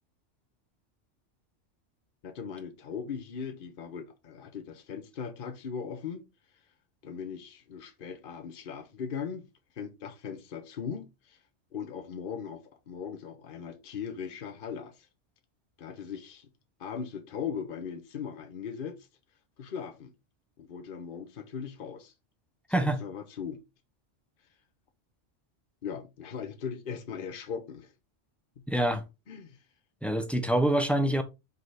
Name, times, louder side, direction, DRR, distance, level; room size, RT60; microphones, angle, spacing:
voice 1, 2.2-6.2 7.0-9.4 9.8-11.4 11.7-14.9 15.8-16.5 16.8-19.0 19.6-20.1 20.6-22.1 22.8-23.6 25.8-27.9 29.3-29.6, left 7 dB, 50° left, 1.1 m, -39 dB
voice 2, 28.7-29.0 30.0-31.2, right 1 dB, ahead, 0.7 m, -25 dB
4.9 x 4.1 x 4.8 m
omnidirectional pair, 1.2 m